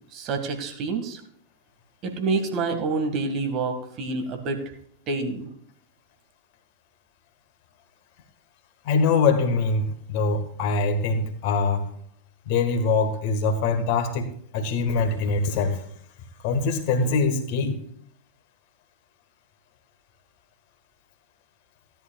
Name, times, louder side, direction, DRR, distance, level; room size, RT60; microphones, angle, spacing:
voice 1, 0.1-1.2 2.0-4.6 5.1-5.5, right 3 dB, 35° right, 6 dB, 1.8 m, -27 dB
voice 2, 8.8-11.8 12.5-15.8 16.4-17.8, left 4 dB, 45° left, 6 dB, 1.6 m, -23 dB
16.5 x 10.5 x 2.3 m, 0.66 s
figure-of-eight pair, 90°, 0 cm